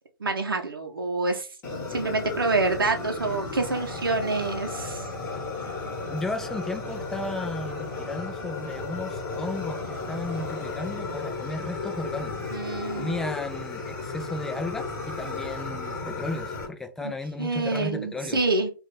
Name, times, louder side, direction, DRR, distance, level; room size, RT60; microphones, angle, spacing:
voice 1, 0.2-1.5 1.9-5.1 12.5-13.2 17.0-17.1 17.4-18.7, right 3 dB, 75° right, 3 dB, 0.7 m, -27 dB
Fire, 1.6-16.7, left 3 dB, 20° left, 1.6 m, -34 dB
voice 2, 6.1-12.4 12.9-18.4, left 2 dB, 5° left, 5 dB, 0.4 m, -34 dB
3.7 x 2.5 x 3.5 m, 0.33 s
figure-of-eight pair, 120°, 12 cm